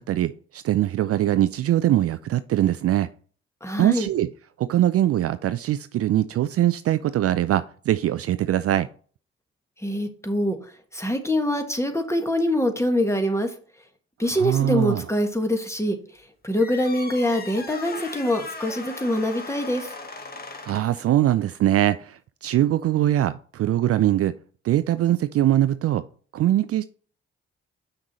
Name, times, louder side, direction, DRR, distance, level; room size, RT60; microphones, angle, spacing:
voice 1, 0.0-3.1 3.8-4.3 4.6-8.9 14.4-15.0 20.7-24.3 24.6-26.0 26.3-26.8, right 13 dB, 50° right, 14 dB, 0.4 m, -22 dB
voice 2, 3.6-4.1 9.8-13.5 14.2-16.0 16.4-19.9, left 1 dB, 10° left, 5 dB, 1.7 m, -24 dB
sound 1, 16.6-21.0, left 3 dB, 30° left, 1.4 m, -38 dB
6.7 x 5.9 x 4.2 m, 0.43 s
hypercardioid pair, 40°, 31 cm